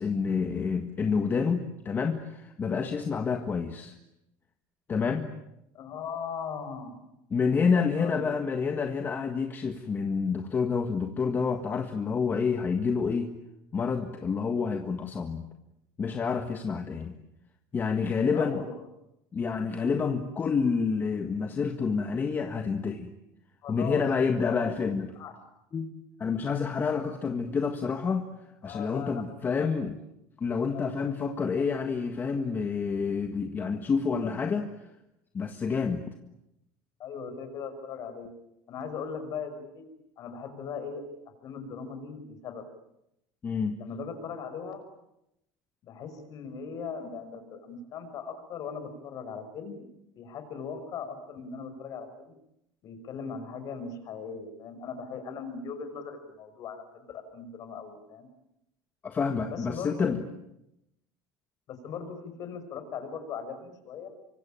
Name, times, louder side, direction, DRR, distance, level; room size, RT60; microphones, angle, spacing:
voice 1, 0.0-3.9 4.9-5.3 7.3-13.3 13.7-15.5 16.0-17.1 17.7-18.6 19.3-23.1 23.7-25.1 25.7-25.9 26.2-28.3 28.6-29.9 30.4-34.7 35.3-36.0 43.4-43.8 59.0-60.2, left 5 dB, 20° left, 6 dB, 1.7 m, -28 dB
voice 2, 5.7-7.1 8.0-8.3 18.2-18.9 23.6-24.0 24.4-24.9 25.2-25.4 28.6-29.3 29.6-29.7 30.7-30.8 34.2-34.6 37.0-38.3 38.7-39.8 40.2-41.0 41.4-42.6 43.8-44.8 45.8-49.9 50.2-52.4 52.8-58.3 59.5-60.2 61.7-64.1, left 6 dB, 40° left, 9 dB, 5.7 m, -39 dB
26.5 x 25.0 x 8.9 m, 0.84 s
cardioid pair, 155°, 9 cm